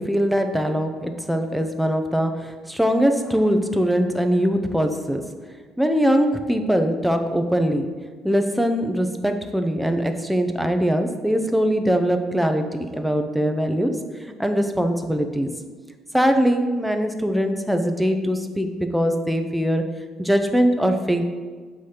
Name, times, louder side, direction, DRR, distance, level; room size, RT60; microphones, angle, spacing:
voice 1, 0.0-5.2 5.8-7.9 8.2-14.0 14.4-15.5 16.1-19.9 20.2-21.2, equal, ahead, 6 dB, 0.4 m, -22 dB
7.6 x 2.8 x 4.8 m, 1.5 s
cardioid pair, 160°, 0 cm